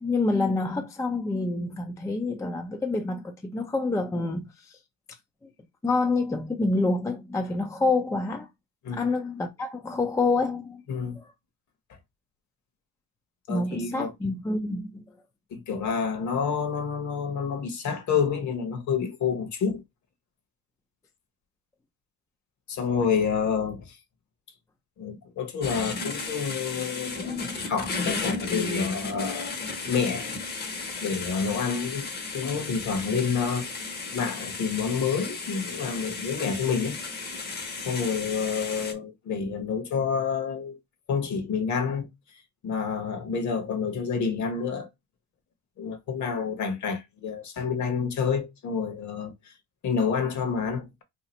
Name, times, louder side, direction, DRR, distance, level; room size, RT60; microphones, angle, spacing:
voice 1, 0.0-4.8 5.4-5.5 5.8-8.5 8.9-10.8 11.2-11.3 13.5-15.0, left 3 dB, 10° left, 0.4 m, -27 dB
voice 2, 10.9-11.2 13.5-14.1 15.5-19.8 22.7-24.0 25.0-29.5 29.9-30.4 31.0-32.1 32.3-37.0 37.8-40.8 41.1-44.9 45.8-49.5 49.8-50.9, left 6 dB, 45° left, 1.1 m, -28 dB
sound 1, 25.6-38.9, left 4 dB, 25° left, 0.8 m, -34 dB
2.8 x 2.4 x 4.1 m
cardioid pair, 115°, 39 cm